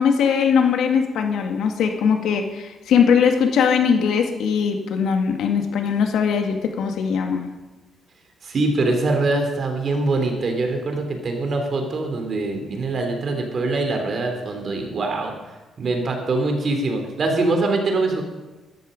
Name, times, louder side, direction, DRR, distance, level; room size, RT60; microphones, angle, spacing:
voice 1, 0.0-7.5, left 6 dB, 75° left, 4 dB, 1.9 m, -20 dB
voice 2, 8.4-15.3 15.8-18.2, right 2 dB, 50° right, 4 dB, 3.3 m, -23 dB
14.0 x 12.5 x 5.3 m, 1.2 s
cardioid pair, 90°, 0 cm